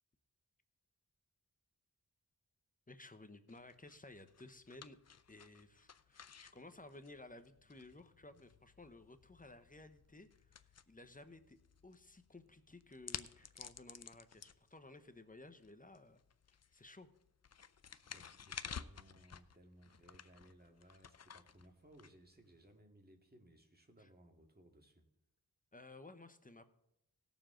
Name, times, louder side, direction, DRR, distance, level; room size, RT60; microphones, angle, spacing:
voice 1, 2.9-5.0 5.3-10.6 10.9-16.2 16.7-17.1 25.7-26.6, left 2 dB, 20° left, 10 dB, 0.9 m, -56 dB
sound 1, 3.5-22.7, left 7 dB, 45° left, 0.6 m, -54 dB
voice 2, 17.9-25.1, right 1 dB, 25° right, 3 dB, 2.0 m, -63 dB
18.5 x 7.1 x 3.8 m, 0.78 s
wide cardioid pair, 75°, 37 cm